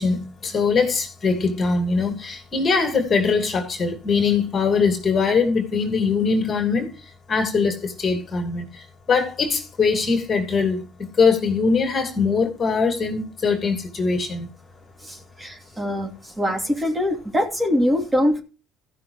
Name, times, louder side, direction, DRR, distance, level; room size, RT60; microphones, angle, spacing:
voice 1, 0.0-6.9 7.3-10.8 11.2-14.5, left 5 dB, 35° left, 2.7 m, -22 dB
voice 2, 15.0-18.4, left 1 dB, 15° right, 2.6 m, -23 dB
14.5 x 6.0 x 4.8 m
supercardioid pair, 95°, 0 cm